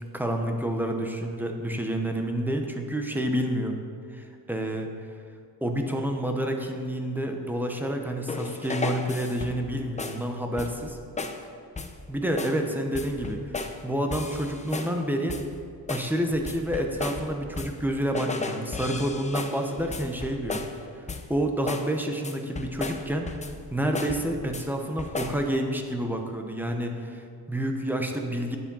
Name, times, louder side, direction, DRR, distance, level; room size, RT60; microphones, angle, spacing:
voice 1, 0.1-3.7 4.1-4.9 5.6-11.0 12.1-13.6 13.8-15.4 15.9-20.6 21.0-21.1 21.3-23.3 23.7-28.6, right 1 dB, 5° right, 3 dB, 1.0 m, -29 dB
sound 1, 8.3-9.7 10.0-10.3 10.6-10.9 11.2-11.4 11.8-12.0 12.4-12.6 12.9-13.8 14.1-15.0 15.3-15.6 15.9-17.9 18.1-20.8 21.1-21.4 21.7-21.9 22.2-23.6 23.9-24.7 25.0-25.4, left 3 dB, 20° left, 0.6 m, -35 dB
9.9 x 7.5 x 5.5 m, 2.2 s
cardioid pair, 120°, 37 cm